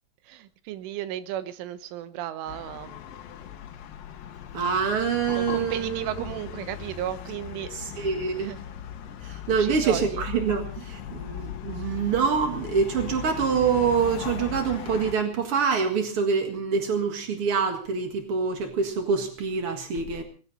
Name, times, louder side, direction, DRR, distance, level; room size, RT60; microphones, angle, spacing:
voice 1, 0.3-3.0 5.4-8.1 8.4-8.6 9.5-10.3, right 12 dB, 85° right, 12 dB, 3.6 m, -35 dB
sound 1, 2.5-15.1, left 10 dB, 65° left, 2.4 m, -38 dB
voice 2, 4.5-6.1 7.7-8.5 9.2-20.2, right 6 dB, 65° right, 5 dB, 1.3 m, -26 dB
20.0 x 16.5 x 4.2 m, 0.39 s
omnidirectional pair, 5.5 m